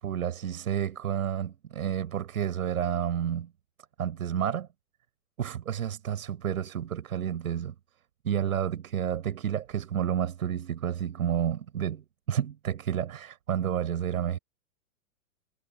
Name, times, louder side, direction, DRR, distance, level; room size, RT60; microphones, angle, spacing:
voice 1, 0.0-3.5 4.0-4.7 5.4-7.8 8.2-14.4, right 9 dB, 90° right, 5.7 m, -30 dB
supercardioid pair, 165°, 41 cm